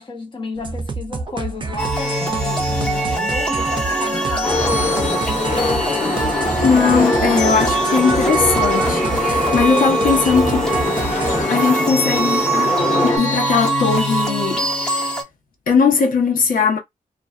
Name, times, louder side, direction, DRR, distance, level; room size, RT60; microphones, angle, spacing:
voice 1, 0.0-5.8, left 3 dB, 35° left, 0.8 m, -32 dB
sound 1, 0.6-11.4, right 3 dB, 35° right, 0.5 m, -29 dB
sound 2, 1.8-15.2, right 2 dB, 5° left, 0.8 m, -22 dB
sound 3, 4.4-13.2, left 2 dB, 60° left, 1.0 m, -23 dB
voice 2, 6.6-11.0 11.5-15.1 15.7-16.8, left 5 dB, 90° left, 0.9 m, -19 dB
2.4 x 2.3 x 2.3 m
wide cardioid pair, 115°, 14 cm